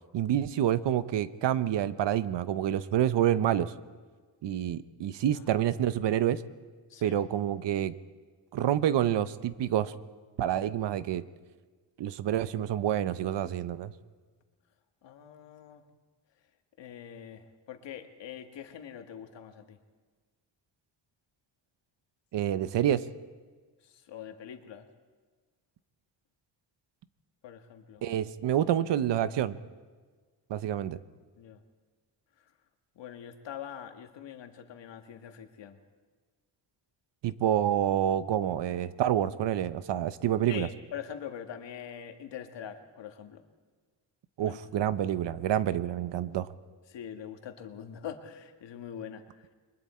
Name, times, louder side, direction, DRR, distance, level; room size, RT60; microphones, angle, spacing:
voice 1, 0.1-3.7 4.4-6.4 7.0-8.0 8.5-9.9 10.4-11.2 12.0-13.9 22.3-23.0 28.0-29.5 30.5-31.0 37.2-40.7 44.4-46.5, right 11 dB, 75° right, 14 dB, 0.9 m, -28 dB
voice 2, 15.0-15.8 16.8-19.8 24.1-24.9 27.4-28.0 31.4-31.6 33.0-35.8 40.5-43.4 44.4-44.6 46.9-49.5, left 9 dB, 80° left, 6 dB, 1.8 m, -43 dB
30.0 x 23.0 x 4.4 m, 1.4 s
wide cardioid pair, 160°, 43 cm